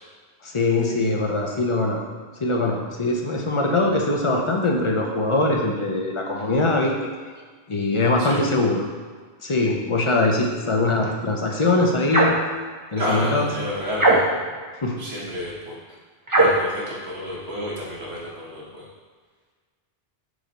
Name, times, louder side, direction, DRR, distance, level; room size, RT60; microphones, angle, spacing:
voice 1, 0.4-2.0 2.4-6.9 7.7-8.8 9.4-12.4 12.9-13.5 14.8-15.0, left 2 dB, 35° left, 0 dB, 0.7 m, -22 dB
sound 1, 12.1-12.5 14.0-14.5 16.3-16.7, right 2 dB, 20° right, 0.8 m, -18 dB
voice 2, 13.0-14.2 15.0-15.8 16.4-18.9, left 1 dB, 75° right, -6 dB, 1.8 m, -30 dB
6.2 x 3.7 x 4.2 m, 1.5 s
omnidirectional pair, 1.1 m